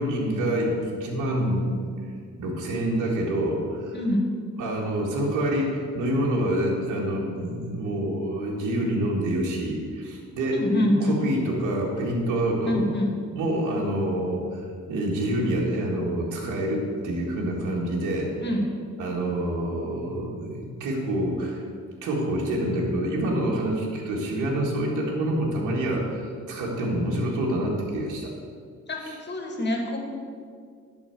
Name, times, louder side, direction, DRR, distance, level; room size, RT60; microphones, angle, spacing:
voice 1, 0.0-1.8 2.4-4.0 4.6-10.7 11.0-12.8 13.3-18.5 19.0-21.6 22.0-28.3 29.0-29.2, right 1 dB, 90° right, -2 dB, 1.8 m, -27 dB
voice 2, 3.9-4.2 10.5-11.2 12.7-13.1 18.4-18.6 28.9-30.0, left 1 dB, 35° left, 1 dB, 2.1 m, -25 dB
11.0 x 4.4 x 7.8 m, 2.2 s
cardioid pair, 90°, 30 cm